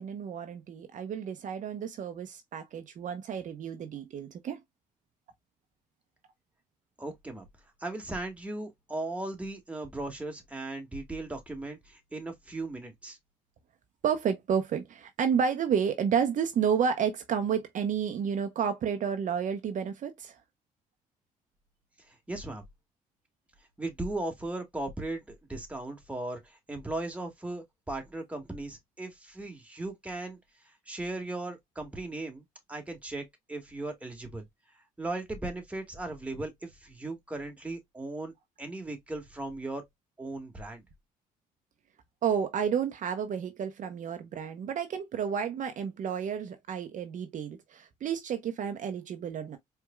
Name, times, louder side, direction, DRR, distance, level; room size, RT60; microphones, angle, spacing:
voice 1, 0.0-4.6 14.0-20.4 42.2-49.6, right 7 dB, 60° right, 0.8 m, -31 dB
voice 2, 7.0-7.5 7.8-13.2 22.3-22.6 23.8-30.4 30.9-32.4 32.7-34.4 35.0-38.3 38.6-39.8 40.2-40.8, right 2 dB, 10° right, 1.7 m, -37 dB
4.6 x 3.4 x 2.3 m
cardioid pair, 85°, 15 cm